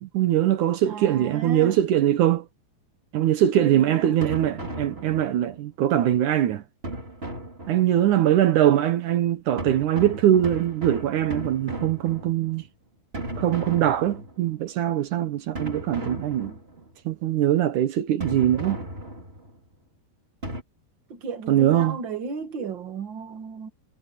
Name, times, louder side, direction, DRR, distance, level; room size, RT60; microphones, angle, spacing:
voice 1, 0.0-2.5 3.1-6.6 7.7-12.6 13.4-16.6 17.1-18.8 21.5-22.0, right 11 dB, 70° right, 1.9 m, -22 dB
voice 2, 0.8-1.7 3.6-4.2 21.1-23.7, right 4 dB, 50° right, 1.4 m, -34 dB
sound 1, 4.2-5.6 6.8-8.1 9.6-12.7 13.1-14.6 15.6-16.9 18.2-19.6 20.4-20.6, right 1 dB, 15° right, 3.3 m, -36 dB
omnidirectional pair, 4.9 m